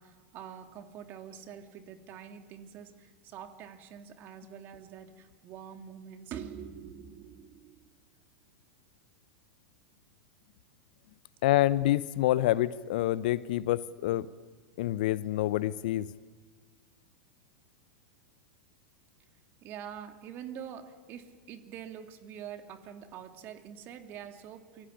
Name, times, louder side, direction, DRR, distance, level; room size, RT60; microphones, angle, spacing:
voice 1, 0.0-7.8 19.6-24.9, right 8 dB, 40° right, 3.0 m, -45 dB
voice 2, 11.4-14.3 14.8-16.1, left 15 dB, 60° left, 0.9 m, -27 dB
27.5 x 24.0 x 8.7 m
hypercardioid pair, 95°, 5 cm